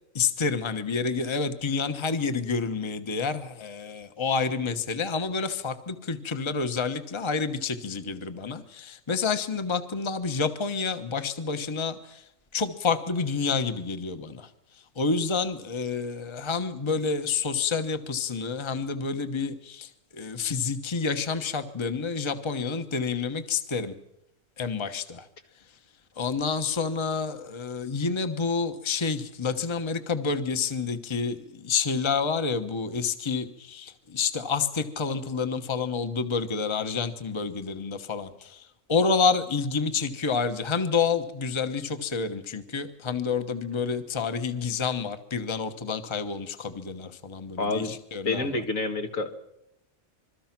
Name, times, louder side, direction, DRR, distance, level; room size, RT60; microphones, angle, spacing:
voice 1, 0.1-12.2 12.5-14.5 15.0-23.9 24.6-25.3 26.2-48.6, left 5 dB, 20° left, 8 dB, 1.1 m, -29 dB
voice 2, 47.6-47.9 48.3-49.5, left 3 dB, 70° left, 5 dB, 2.2 m, -28 dB
26.0 x 22.0 x 6.0 m, 0.84 s
omnidirectional pair, 1.4 m